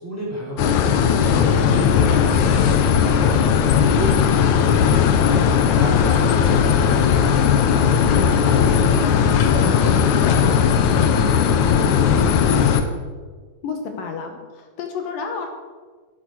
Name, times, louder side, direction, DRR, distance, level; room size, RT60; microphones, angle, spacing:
voice 1, 0.0-7.4 7.7-12.7, right 1 dB, 5° right, -5 dB, 3.3 m, -33 dB
sound 1, 0.6-12.8, left 7 dB, 85° left, 1.6 m, -17 dB
voice 2, 13.6-15.5, left 5 dB, 70° left, 4 dB, 2.5 m, -30 dB
12.0 x 12.0 x 4.7 m, 1.5 s
omnidirectional pair, 4.6 m